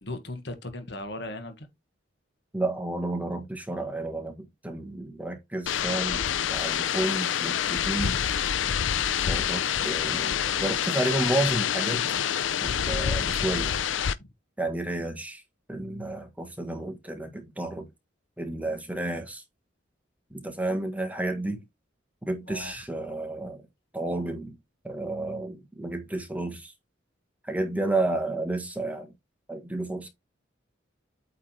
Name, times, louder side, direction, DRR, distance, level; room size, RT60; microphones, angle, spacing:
voice 1, 0.0-1.7 14.1-14.3 22.5-22.7, left 2 dB, 65° left, 1.6 m, -37 dB
voice 2, 2.5-8.2 9.2-12.0 12.6-13.8 14.6-15.4 15.7-17.9 18.4-19.4 20.3-21.6 22.3-23.7 23.9-24.6 24.8-26.7 27.4-29.1 29.5-30.1, right 2 dB, 10° right, 1.5 m, -31 dB
sound 1, 5.7-14.1, left 9 dB, 85° left, 0.5 m, -27 dB
8.6 x 3.7 x 4.4 m
head